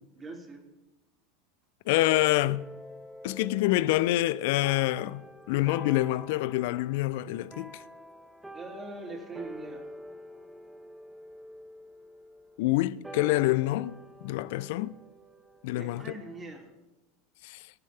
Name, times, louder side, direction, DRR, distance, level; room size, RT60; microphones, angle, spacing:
voice 1, 0.2-0.7 8.5-9.9 15.7-16.7, right 2 dB, 20° right, 3.0 m, -42 dB
voice 2, 1.9-2.7 3.2-7.8 12.6-13.9 14.2-14.9 15.6-16.0 17.4-17.6, left 17 dB, 70° left, 0.4 m, -26 dB
sound 1, 2.0-16.7, right 1 dB, 5° right, 1.2 m, -47 dB
18.5 x 9.9 x 3.4 m
hypercardioid pair, 100°, 0 cm